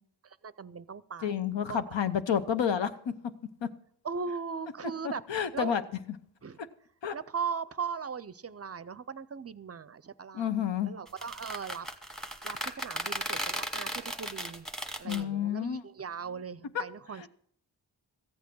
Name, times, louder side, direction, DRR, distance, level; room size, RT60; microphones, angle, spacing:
voice 1, 0.2-1.8 4.0-5.2 5.5-5.7 6.4-6.6 7.1-10.5 10.8-11.9 12.4-14.7 15.0-17.3, right 6 dB, 35° right, 17 dB, 0.5 m, -38 dB
voice 2, 1.2-2.9 3.6-3.7 5.3-5.8 7.0-7.1 10.3-10.9 15.0-15.8, left 8 dB, 90° left, 10 dB, 0.9 m, -29 dB
sound 1, 11.1-15.2, equal, ahead, 1.1 m, -36 dB
14.5 x 8.4 x 6.1 m, 0.65 s
wide cardioid pair, 85°, 43 cm